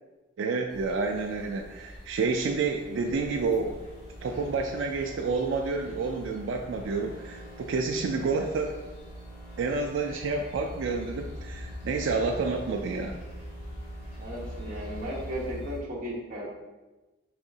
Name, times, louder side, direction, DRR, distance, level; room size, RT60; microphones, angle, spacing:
voice 1, 0.4-3.8 4.2-8.7 9.6-13.1, right 4 dB, 75° right, 2 dB, 0.3 m, -29 dB
sound 1, 0.7-15.8, left 1 dB, 30° left, 1.1 m, -44 dB
sound 2, 2.2-15.6, right 1 dB, 50° left, 0.8 m, -46 dB
voice 2, 14.2-16.4, equal, 45° right, -5 dB, 1.0 m, -35 dB
4.8 x 3.4 x 2.7 m, 1.1 s
head